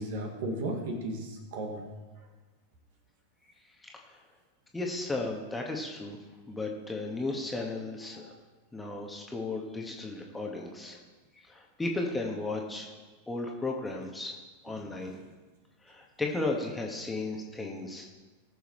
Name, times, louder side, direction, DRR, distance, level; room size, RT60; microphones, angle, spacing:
voice 1, 0.0-1.8 2.2-2.3 14.8-15.1, right 1 dB, 55° right, 2 dB, 2.0 m, -35 dB
voice 2, 3.8-4.2 4.7-6.2 6.5-8.3 8.7-11.0 11.3-12.9 13.3-14.4 14.6-15.2 15.8-18.1, left 2 dB, 10° left, 0 dB, 1.6 m, -35 dB
19.0 x 6.9 x 3.2 m, 1.3 s
figure-of-eight pair, 90°, 0 cm